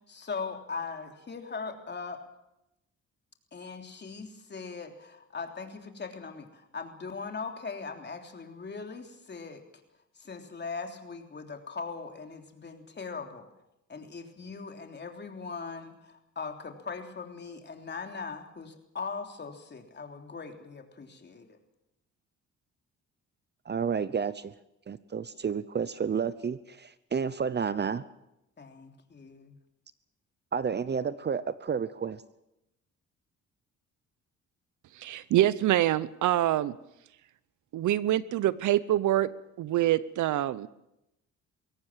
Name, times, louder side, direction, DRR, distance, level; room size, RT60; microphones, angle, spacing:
voice 1, 0.1-2.2 3.5-9.6 10.2-13.5 13.9-21.6 28.6-29.6, left 4 dB, 35° left, 4 dB, 3.4 m, -40 dB
voice 2, 23.7-24.5 24.9-28.0 30.5-32.2, right 6 dB, 35° right, 16 dB, 0.8 m, -31 dB
voice 3, 35.0-36.7 37.7-39.3 39.6-40.7, right 13 dB, 75° right, 18 dB, 0.9 m, -25 dB
22.0 x 17.5 x 7.5 m, 0.86 s
cardioid pair, 90°, 30 cm